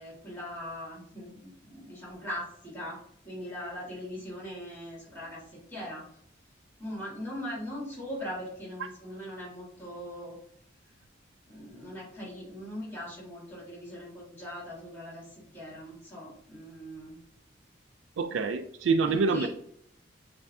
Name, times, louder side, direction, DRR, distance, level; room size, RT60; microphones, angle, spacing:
voice 1, 0.0-3.0 3.2-5.4 5.7-6.0 6.8-10.4 11.5-17.2 19.0-19.5, equal, 10° left, -5 dB, 1.7 m, -40 dB
voice 2, 18.2-19.5, right 4 dB, 75° right, 8 dB, 0.3 m, -26 dB
6.9 x 2.6 x 2.3 m, 0.68 s
head